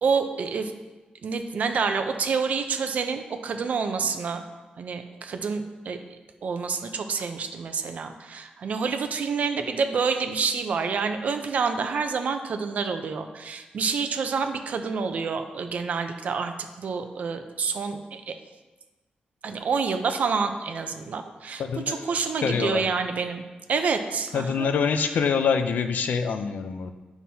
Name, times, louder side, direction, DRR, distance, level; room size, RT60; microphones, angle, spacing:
voice 1, 0.0-0.7 1.2-4.4 4.8-18.4 19.4-23.4 23.7-24.7, right 5 dB, 60° right, 7 dB, 0.6 m, -28 dB
voice 2, 21.6-22.1 22.4-22.9 24.3-26.9, left 6 dB, 80° left, 8 dB, 0.5 m, -25 dB
9.4 x 5.8 x 2.8 m, 1.2 s
wide cardioid pair, 145°, 3 cm